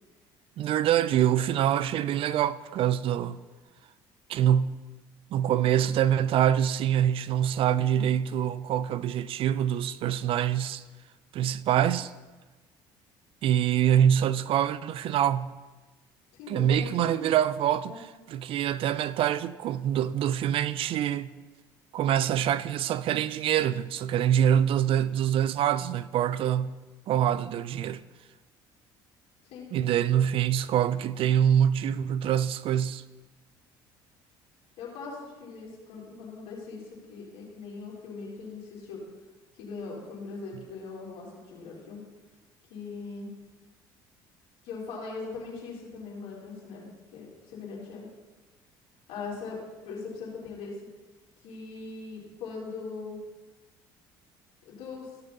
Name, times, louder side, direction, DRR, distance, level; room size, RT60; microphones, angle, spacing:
voice 1, 0.6-3.4 4.3-4.8 5.3-10.8 11.3-12.1 13.4-15.5 16.5-21.3 21.9-26.8 27.1-28.0 29.7-33.0, right 10 dB, 60° right, 0.5 m, -25 dB
voice 2, 16.3-17.2 17.8-18.0 29.4-29.7 34.8-39.0 39.5-42.1 42.7-43.4 44.6-48.1 49.1-50.8 51.4-53.2 54.6-55.1, left 4 dB, 75° left, 4.0 m, -40 dB
16.0 x 6.7 x 4.2 m
supercardioid pair, 75°, 11 cm